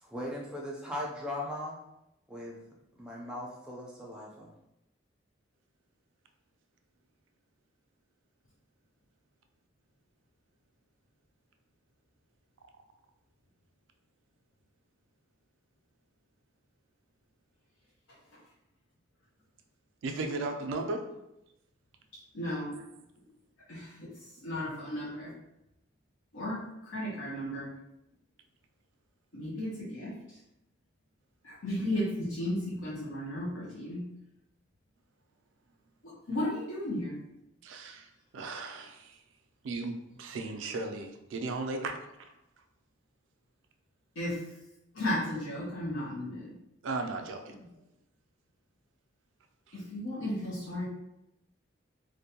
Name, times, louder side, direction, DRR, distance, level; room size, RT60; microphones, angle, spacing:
voice 1, 0.0-1.8 2.3-2.6 3.0-4.5, left 1 dB, 5° right, -3 dB, 0.4 m, -38 dB
voice 2, 20.0-21.1 22.7-22.9 37.6-39.2 39.6-42.0 46.8-47.6 49.7-49.8, right 3 dB, 75° right, 5 dB, 0.3 m, -36 dB
voice 3, 22.3-22.7 23.7-24.1 24.4-25.3 26.3-26.6 26.9-27.7 29.3-30.1 31.4-34.0 36.0-37.2 44.2-44.4 44.9-46.5 49.7-50.9, left 1 dB, 85° left, -7 dB, 0.7 m, -34 dB
2.5 x 2.1 x 2.7 m, 0.87 s
head